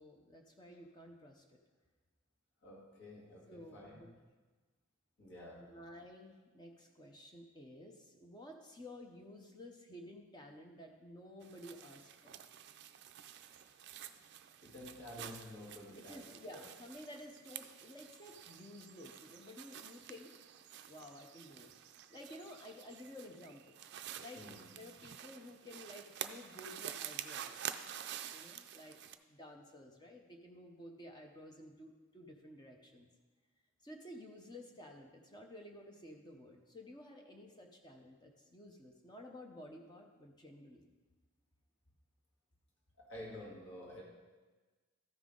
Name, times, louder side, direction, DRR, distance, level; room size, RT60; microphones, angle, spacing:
voice 1, 0.0-1.6 3.5-4.1 5.5-12.4 15.9-20.3 20.9-21.7 22.1-23.8 24.2-24.5 24.7-27.7 28.3-29.0 29.3-33.1 33.8-40.8, left 1 dB, 20° left, 2 dB, 0.6 m, -53 dB
voice 2, 2.6-4.0 5.2-5.7 14.6-16.2 16.5-16.7 24.3-24.8 43.0-44.0, left 1 dB, 55° left, -3 dB, 2.0 m, -50 dB
sound 1, 11.4-29.1, right 10 dB, 50° right, 0.4 m, -49 dB
13.5 x 5.6 x 3.7 m, 1.3 s
head